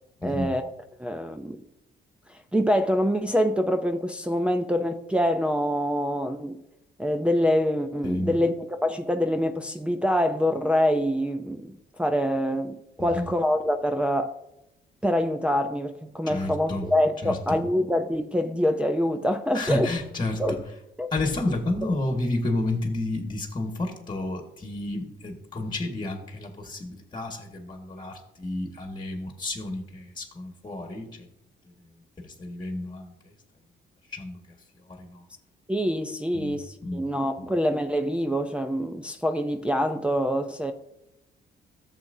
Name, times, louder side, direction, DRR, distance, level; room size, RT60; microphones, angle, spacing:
voice 1, 0.2-0.7 1.0-1.6 2.3-6.6 7.0-14.3 15.0-19.9 20.4-20.6 21.0-21.1 35.7-40.7, equal, 5° right, 0.5 m, -25 dB
voice 2, 16.3-16.8 17.2-17.6 19.5-20.6 21.1-31.3 32.2-33.1 34.1-34.4 34.9-35.2 36.3-36.6 36.8-37.0, left 2 dB, 20° left, 1.6 m, -31 dB
13.5 x 7.3 x 2.7 m
cardioid pair, 90°, 20 cm